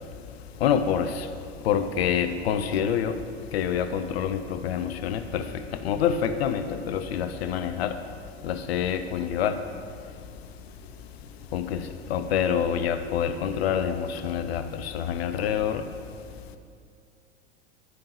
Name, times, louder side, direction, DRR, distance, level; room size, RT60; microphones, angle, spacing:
voice 1, 0.6-1.3 1.6-3.2 3.5-8.0 8.4-9.6 11.5-15.9, left 8 dB, 65° left, 0.5 m, -27 dB
11.0 x 5.1 x 2.7 m
figure-of-eight pair, 90°, 34 cm